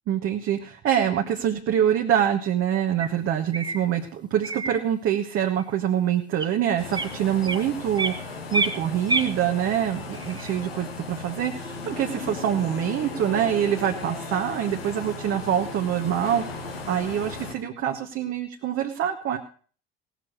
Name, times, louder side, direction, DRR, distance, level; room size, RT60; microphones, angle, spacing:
voice 1, 0.1-19.4, right 10 dB, 50° right, 3 dB, 1.3 m, -25 dB
sound 1, 3.0-3.1 3.5-3.9 4.4-4.8 5.6-5.7 6.3-6.5 6.9-7.1 7.4-8.2 8.5-9.3 10.1-10.8, right 2 dB, 15° right, 1.4 m, -28 dB
sound 2, 6.8-17.5, left 3 dB, 85° left, 1.5 m, -36 dB
17.5 x 6.9 x 6.2 m, 0.43 s
figure-of-eight pair, 55°, 29 cm